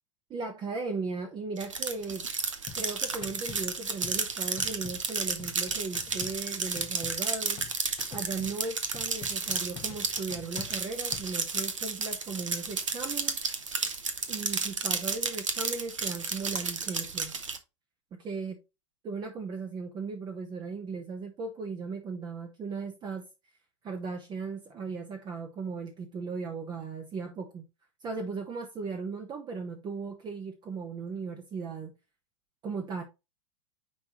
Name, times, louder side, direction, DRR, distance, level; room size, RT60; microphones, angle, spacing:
voice 1, 0.3-2.3 2.7-7.6 8.1-13.4 14.3-17.3 18.2-18.6 19.0-23.3 23.8-27.6 28.0-31.9 32.6-33.0, right 4 dB, 25° right, 1.1 m, -37 dB
sound 1, 1.6-17.6, right 4 dB, 75° right, 1.0 m, -32 dB
sound 2, 2.7-8.6 8.9-11.4, left 10 dB, 25° left, 0.8 m, -46 dB
9.6 x 3.6 x 3.1 m
figure-of-eight pair, 90°, 16 cm